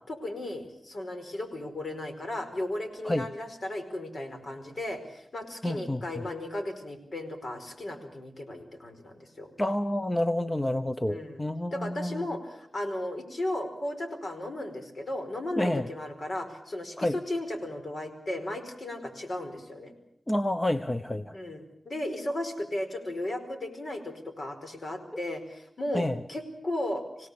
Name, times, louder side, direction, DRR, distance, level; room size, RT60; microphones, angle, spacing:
voice 1, 0.1-9.5 11.1-11.4 11.7-19.9 21.3-27.3, left 1 dB, 60° left, 6 dB, 4.9 m, -35 dB
voice 2, 5.6-6.2 9.6-12.3 15.6-15.9 17.0-17.2 20.3-21.4 25.9-26.2, left 1 dB, 20° left, 11 dB, 0.9 m, -29 dB
26.0 x 17.5 x 8.6 m, 0.73 s
cardioid pair, 60°, 0 cm